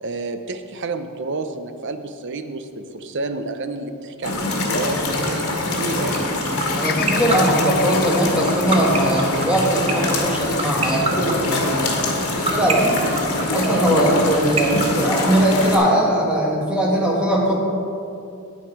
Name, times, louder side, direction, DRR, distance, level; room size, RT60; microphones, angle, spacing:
voice 1, 0.0-6.3 13.0-13.3, right 3 dB, 55° right, 9 dB, 0.6 m, -30 dB
sound 1, 4.2-15.8, left 2 dB, 80° left, 1.8 m, -24 dB
sound 2, 6.1-15.8, right 5 dB, 25° right, 0.9 m, -23 dB
voice 2, 6.7-11.9 12.5-13.0 13.5-17.5, right 1 dB, 5° right, -4 dB, 1.6 m, -20 dB
Bird vocalization bird call bird song, 6.8-11.0 11.6-12.3, left 6 dB, 45° left, 0.7 m, -34 dB
9.3 x 9.0 x 4.7 m, 2.6 s
head